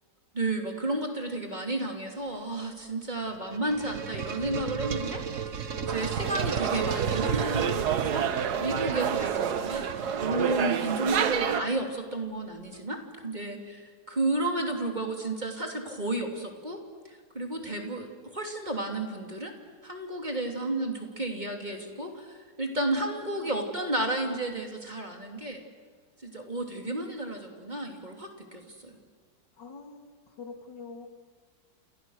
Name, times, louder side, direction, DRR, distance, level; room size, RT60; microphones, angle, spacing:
voice 1, 0.3-19.5 19.8-25.6 26.2-29.0, right 2 dB, 25° right, 2 dB, 3.2 m, -32 dB
sound 1, 3.3-11.0, right 7 dB, 50° right, 1.5 m, -33 dB
sound 2, 5.9-11.6, right 8 dB, 65° right, 1.6 m, -29 dB
voice 2, 8.9-9.2 14.3-14.9 22.9-23.5 29.6-31.1, left 4 dB, 80° left, 5 dB, 2.9 m, -46 dB
29.5 x 29.0 x 6.6 m, 1.5 s
omnidirectional pair, 1.9 m